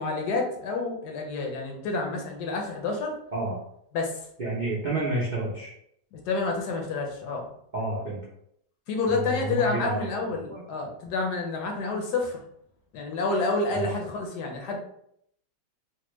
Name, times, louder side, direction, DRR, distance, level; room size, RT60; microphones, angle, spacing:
voice 1, 0.0-3.1 3.9-4.2 6.1-7.5 8.9-12.4 12.9-14.8, left 3 dB, 75° left, 1 dB, 1.2 m, -29 dB
voice 2, 4.4-5.7 7.7-8.2 9.1-10.1 10.5-10.6 13.7-13.9, right 2 dB, 50° right, -8 dB, 0.5 m, -29 dB
3.4 x 2.2 x 3.0 m, 0.71 s
omnidirectional pair, 1.8 m